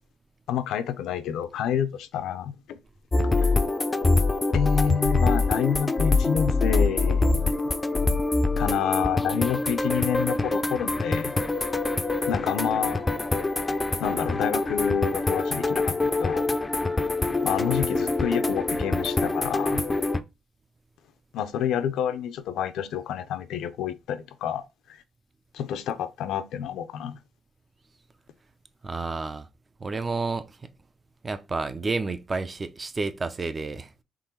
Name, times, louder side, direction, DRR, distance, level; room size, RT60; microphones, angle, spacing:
voice 1, 0.5-2.8 3.4-3.5 4.5-7.4 8.6-11.3 12.3-13.0 14.0-16.6 17.4-19.8 21.3-24.6 24.9-25.0 25.5-27.2, left 8 dB, 80° left, 0.5 m, -28 dB
sound 1, 3.1-20.2, left 3 dB, 20° left, 0.4 m, -25 dB
voice 2, 28.8-29.5 29.8-30.7 31.2-33.9, right 3 dB, 30° right, 0.5 m, -30 dB
3.8 x 3.1 x 4.3 m
cardioid pair, 90°, 0 cm